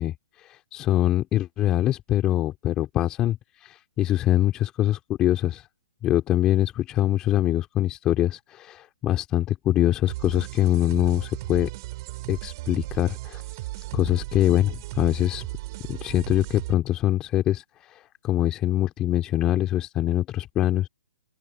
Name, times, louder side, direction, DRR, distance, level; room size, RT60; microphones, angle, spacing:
voice 1, 0.0-5.7 6.0-11.7 12.3-13.4 13.9-15.4 15.9-20.9, left 13 dB, 25° left, 3.0 m, -24 dB
sound 1, 10.1-16.7, right 20 dB, 40° right, 7.4 m, -36 dB
open air
hypercardioid pair, 135°, 3 cm